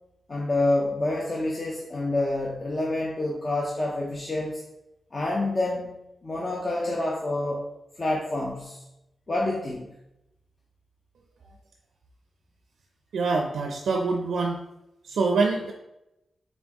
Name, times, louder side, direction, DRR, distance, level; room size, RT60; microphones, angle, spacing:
voice 1, 0.3-4.6 5.1-7.7 8.0-8.8 9.3-9.9, left 2 dB, 35° left, -2 dB, 0.6 m, -27 dB
voice 2, 13.1-14.6 15.1-15.7, right 4 dB, 85° right, 2 dB, 0.4 m, -25 dB
4.3 x 3.5 x 2.9 m, 0.88 s
wide cardioid pair, 125°, 0 cm